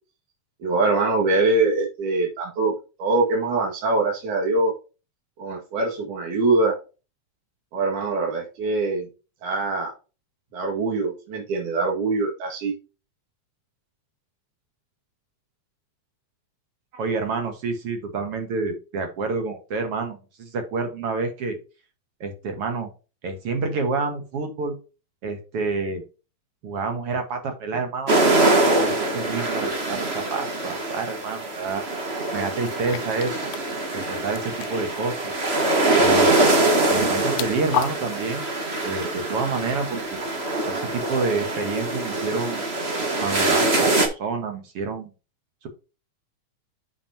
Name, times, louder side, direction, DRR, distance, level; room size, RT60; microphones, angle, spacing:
voice 1, 0.6-2.7 3.0-4.7 5.4-6.8 7.7-9.1 9.4-9.9 10.5-12.7, right 3 dB, 85° right, 0 dB, 3.5 m, -23 dB
voice 2, 16.9-21.6 22.2-22.9 23.2-24.7 25.2-26.0 26.6-28.1 28.7-33.4 33.9-35.3 36.0-36.5 36.9-38.5 38.8-40.2 40.7-42.7 43.2-45.1, right 4 dB, 55° right, 5 dB, 2.2 m, -28 dB
sound 1, 28.1-44.1, right 2 dB, 35° right, 1.1 m, -23 dB
sound 2, 29.8-29.9 32.6-33.7 34.0-34.1 34.4-35.0 36.9-37.9, left 11 dB, 90° left, 1.3 m, -31 dB
9.4 x 6.1 x 2.8 m, 0.32 s
omnidirectional pair, 3.5 m